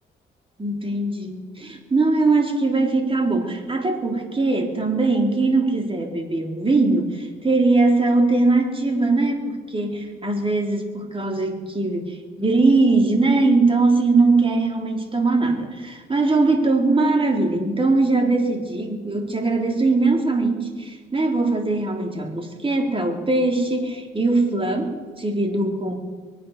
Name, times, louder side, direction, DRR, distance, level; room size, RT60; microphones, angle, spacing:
voice 1, 0.6-25.9, right 3 dB, 30° right, 3 dB, 3.6 m, -21 dB
23.5 x 8.7 x 6.6 m, 1.4 s
cardioid pair, 70°, 19 cm